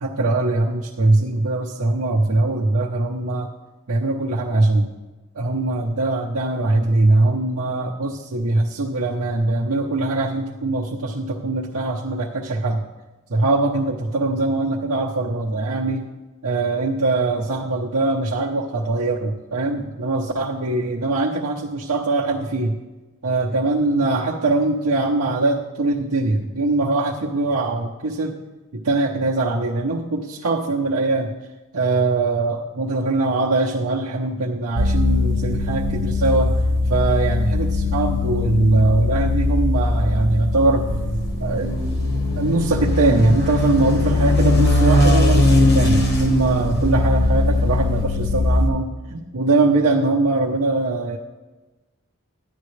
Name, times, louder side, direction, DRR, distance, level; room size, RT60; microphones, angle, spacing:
voice 1, 0.0-3.5 3.9-4.9 5.4-12.8 13.3-16.0 16.4-22.7 23.2-28.4 28.7-31.3 31.7-36.5 36.9-40.8 41.4-41.8 42.4-51.2, right 2 dB, 85° right, -4 dB, 0.8 m, -21 dB
sound 1, 34.8-48.7, left 2 dB, 55° right, 0.8 m, -21 dB
sound 2, 40.4-48.0, equal, 45° left, 1.2 m, -22 dB
11.0 x 9.5 x 3.2 m, 1.2 s
head